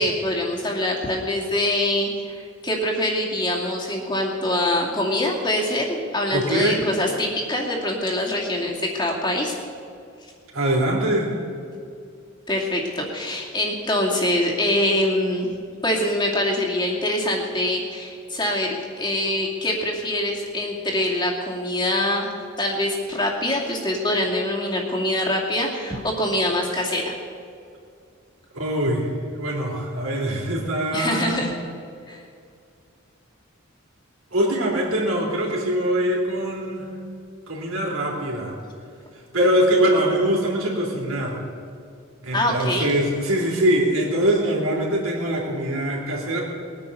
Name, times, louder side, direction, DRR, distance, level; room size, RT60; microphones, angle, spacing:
voice 1, 0.0-2.1 2.6-9.6 12.5-15.5 15.8-18.7 19.0-22.3 22.6-27.2 30.9-31.5 32.1-32.2 42.3-42.9, left 1 dB, 20° left, -1 dB, 2.4 m, -24 dB
voice 2, 6.3-6.8 10.5-11.3 28.5-31.5 34.3-36.9 37.5-38.6 39.1-41.4 42.2-46.4, right 1 dB, 80° right, -3 dB, 3.5 m, -23 dB
20.5 x 9.7 x 6.8 m, 2.4 s
head